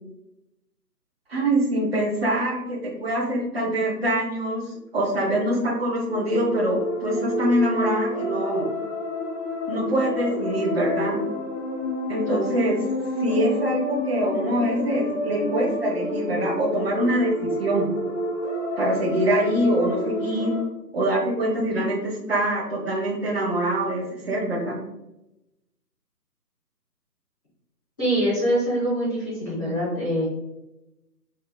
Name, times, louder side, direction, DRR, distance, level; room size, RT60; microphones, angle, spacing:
voice 1, 1.3-8.7 9.7-11.2 12.1-12.8 13.2-17.9 18.8-20.5 20.9-24.8, right 1 dB, 40° right, -2 dB, 0.8 m, -24 dB
sound 1, 6.0-20.6, left 1 dB, 45° left, 0.7 m, -29 dB
voice 2, 28.0-30.3, equal, 10° left, -11 dB, 1.0 m, -24 dB
4.2 x 2.8 x 2.2 m, 0.92 s
figure-of-eight pair, 155°, 50 cm